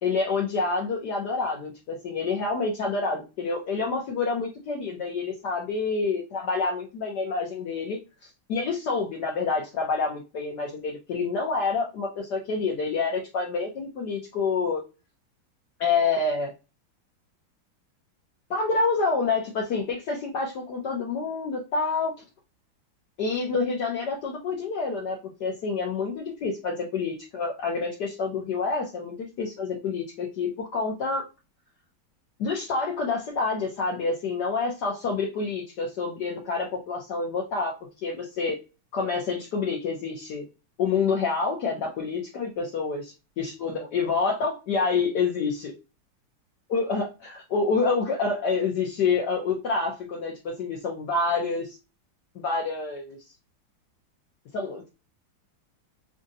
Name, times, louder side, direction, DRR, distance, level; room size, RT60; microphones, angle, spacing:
voice 1, 0.0-14.8 15.8-16.5 18.5-22.2 23.2-31.2 32.4-38.6 38.9-40.5 40.8-45.7 46.7-51.8 52.3-53.2 54.5-54.9, left 4 dB, 65° left, 0 dB, 1.2 m, -28 dB
6.3 x 2.4 x 2.6 m, 0.29 s
omnidirectional pair, 2.2 m